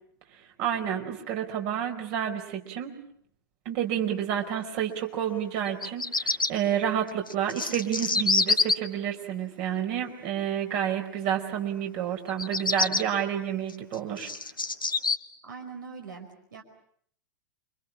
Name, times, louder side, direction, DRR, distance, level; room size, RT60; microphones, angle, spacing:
voice 1, 0.6-2.9 3.6-14.3, right 9 dB, 45° right, 4 dB, 4.9 m, -29 dB
Bird vocalization bird call bird song, 5.7-6.5 7.3-8.7 12.3-13.0 13.7-15.2, left 3 dB, 85° left, 1.5 m, -26 dB
voice 2, 15.4-16.6, right 5 dB, 70° right, 3 dB, 5.0 m, -42 dB
29.5 x 25.0 x 7.3 m, 0.65 s
figure-of-eight pair, 95°, 11 cm